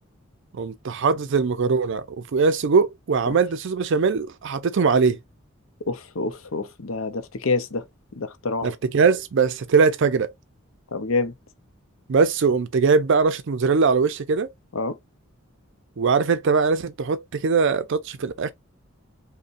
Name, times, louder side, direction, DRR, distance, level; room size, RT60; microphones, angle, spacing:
voice 1, 0.5-5.2 8.6-10.3 12.1-14.5 16.0-18.5, right 5 dB, 60° right, 0.5 m, -21 dB
voice 2, 5.9-7.9 8.1-8.7 10.9-11.3 14.7-15.0, left 3 dB, 70° left, 0.6 m, -27 dB
5.3 x 2.2 x 2.5 m
head